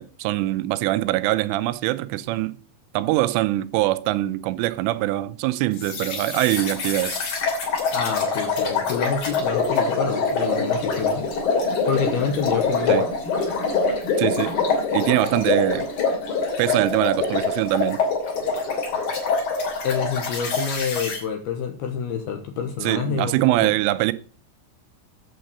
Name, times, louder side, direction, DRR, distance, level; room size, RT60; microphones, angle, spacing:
voice 1, 0.0-2.6 2.9-7.2 12.9-13.1 14.2-14.5 14.9-15.9 16.6-18.0 22.8-24.1, right 16 dB, 80° right, 3.1 m, -23 dB
sound 1, 5.8-21.2, left 4 dB, 50° left, 4.3 m, -24 dB
voice 2, 7.9-11.3 11.9-13.0 19.8-23.3 23.6-23.7, left 6 dB, 70° left, 2.5 m, -27 dB
8.8 x 7.7 x 6.7 m
omnidirectional pair, 5.8 m